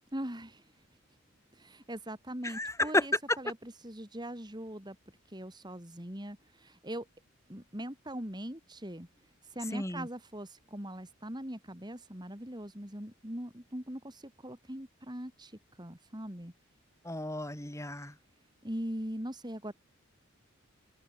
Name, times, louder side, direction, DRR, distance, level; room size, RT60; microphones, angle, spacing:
voice 1, 0.1-0.8 1.5-5.0 5.3-7.1 7.5-9.1 9.4-16.5 18.6-19.7, right 1 dB, 20° right, 4.2 m, -41 dB
voice 2, 2.4-3.0 9.7-10.1 17.0-18.1, left 1 dB, 15° left, 6.2 m, -32 dB
open air
head